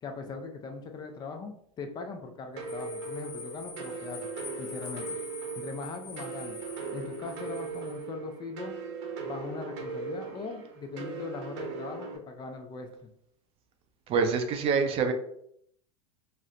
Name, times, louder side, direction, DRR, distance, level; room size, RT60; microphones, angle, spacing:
voice 1, 0.0-4.3 4.6-5.2 5.6-6.6 6.9-8.7 9.3-12.9, left 4 dB, 25° left, 4 dB, 0.4 m, -40 dB
sound 1, 2.6-12.2, right 4 dB, 60° right, 0.9 m, -39 dB
sound 2, 2.7-8.0, left 5 dB, 45° left, 0.8 m, -45 dB
voice 2, 14.1-15.1, right 5 dB, 35° right, 6 dB, 0.5 m, -26 dB
4.1 x 2.1 x 2.4 m, 0.69 s
hypercardioid pair, 115°, 17 cm